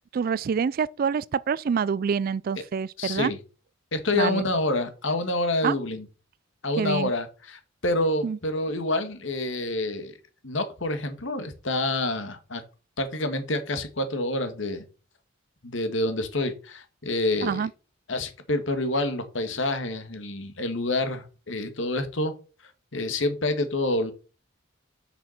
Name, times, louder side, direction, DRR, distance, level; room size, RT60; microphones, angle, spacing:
voice 1, 0.1-3.3 4.1-4.4 5.6-5.7 6.8-7.1 8.2-8.4 17.4-17.7, right 6 dB, 45° right, 0.3 m, -26 dB
voice 2, 3.0-3.4 3.9-6.0 6.6-10.1 10.4-12.6 13.0-14.8 15.6-17.6 18.1-22.3 22.9-24.1, left 2 dB, 70° left, 1.7 m, -27 dB
6.7 x 6.0 x 5.7 m
head